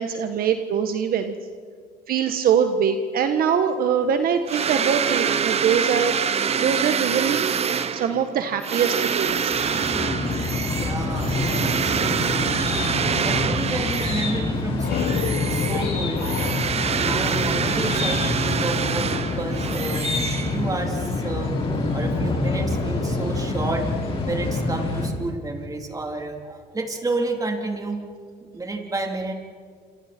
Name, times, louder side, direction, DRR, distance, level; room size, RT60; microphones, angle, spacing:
voice 1, 0.0-1.3 2.1-6.2 6.5-9.7, right 7 dB, 60° right, 7 dB, 1.4 m, -23 dB
sound 1, 4.5-14.5 14.9-20.9, right 7 dB, 40° right, 1.0 m, -26 dB
sound 2, 9.2-25.1, left 2 dB, 35° left, 5.4 m, -26 dB
voice 2, 10.7-12.5 13.2-16.6 16.9-20.1 20.4-21.5 21.9-28.0 28.5-29.3, right 2 dB, 20° right, 2 dB, 3.7 m, -31 dB
sound 3, 14.4-18.1, left 10 dB, 85° left, 1.2 m, -31 dB
28.0 x 27.5 x 4.5 m, 2.1 s
cardioid pair, 110°, 17 cm